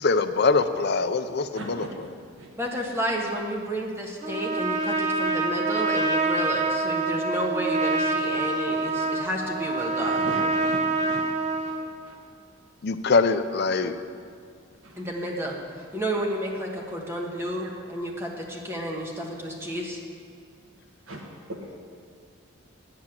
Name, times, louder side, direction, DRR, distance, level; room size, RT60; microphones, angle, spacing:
voice 1, 0.0-1.8 12.8-14.0, left 4 dB, 50° left, 10 dB, 0.5 m, -23 dB
voice 2, 1.5-2.5 10.0-11.2 11.6-12.2 14.8-15.1 17.6-17.7 21.0-21.2 21.5-21.7, right 1 dB, 75° right, 0 dB, 1.4 m, -39 dB
voice 3, 2.6-10.3 15.0-20.0, equal, 10° right, -1 dB, 1.3 m, -31 dB
Trumpet, 4.2-11.9, right 3 dB, 35° right, 0.9 m, -26 dB
9.4 x 7.9 x 8.8 m, 2.2 s
head